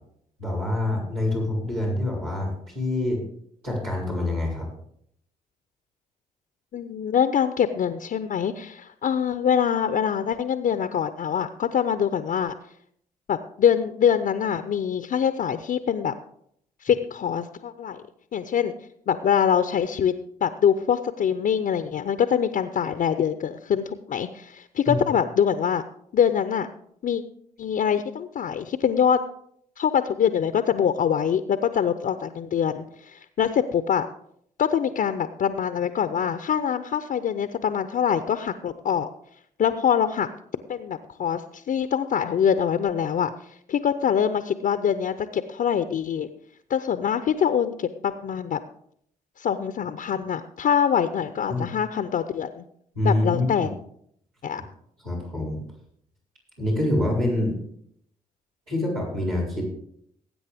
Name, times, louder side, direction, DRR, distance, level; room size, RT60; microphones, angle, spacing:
voice 1, 0.4-3.2 3.6-4.7 24.9-25.0 51.5-51.6 52.9-53.7 55.0-55.6 56.6-57.6 58.7-59.6, left 1 dB, 90° right, -9 dB, 5.3 m, -26 dB
voice 2, 6.7-12.5 13.3-16.1 16.8-18.0 18.3-18.7 19.1-20.1 20.4-25.8 26.1-26.7 27.0-27.2 27.6-29.2 29.8-34.1 34.6-39.1 39.6-40.3 40.7-43.3 43.7-46.3 46.7-48.6 49.4-52.6 53.0-53.7 54.4-54.6, left 8 dB, 50° left, 10 dB, 0.7 m, -24 dB
19.5 x 8.7 x 3.5 m, 0.69 s
hypercardioid pair, 40°, 18 cm